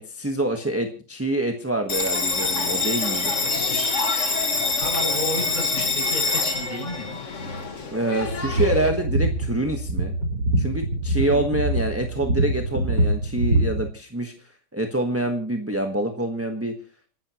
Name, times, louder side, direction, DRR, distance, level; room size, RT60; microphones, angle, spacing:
voice 1, 0.0-3.3 7.9-10.1 10.6-14.3 14.7-16.7, right 1 dB, 10° right, 4 dB, 1.2 m, -26 dB
Bell, 1.9-8.9, left 4 dB, 45° left, 1.9 m, -25 dB
voice 2, 3.4-4.3 4.8-7.2 11.2-11.5, equal, 25° left, 1 dB, 7.8 m, -33 dB
sound 1, 8.2-13.9, right 1 dB, 75° right, 5.0 m, -24 dB
28.5 x 12.0 x 3.0 m, 0.40 s
omnidirectional pair, 1.8 m